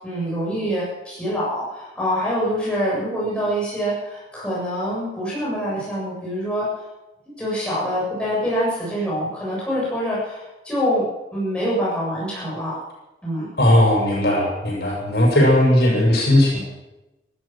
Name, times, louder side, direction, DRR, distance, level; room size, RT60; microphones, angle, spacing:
voice 1, 0.0-6.7 7.3-11.1 11.3-12.8 13.2-13.5, equal, 5° left, -7 dB, 7.7 m, -25 dB
voice 2, 13.6-16.6, left 1 dB, 70° left, -2 dB, 6.8 m, -17 dB
15.0 x 13.0 x 7.4 m, 1.0 s
head